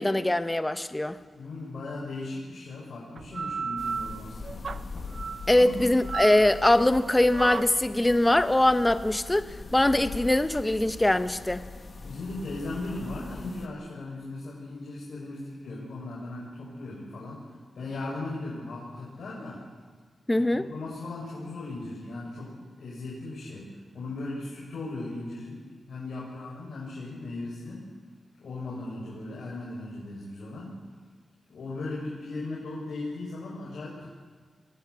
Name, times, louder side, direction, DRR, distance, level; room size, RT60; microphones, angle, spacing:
voice 1, 0.0-1.2 5.5-9.4 9.7-11.6 20.3-20.7, left 1 dB, 15° left, 11 dB, 1.1 m, -22 dB
voice 2, 1.3-4.5 5.5-5.8 12.0-17.4 17.8-19.6 20.3-27.9 28.4-30.8 31.5-34.1, left 2 dB, 75° left, -5 dB, 6.1 m, -37 dB
sound 1, 3.2-12.3, right 5 dB, 60° right, 0.8 m, -37 dB
sound 2, 3.8-13.7, left 4 dB, 50° left, 2.1 m, -42 dB
23.0 x 17.0 x 8.4 m, 1.5 s
cardioid pair, 85°, 0 cm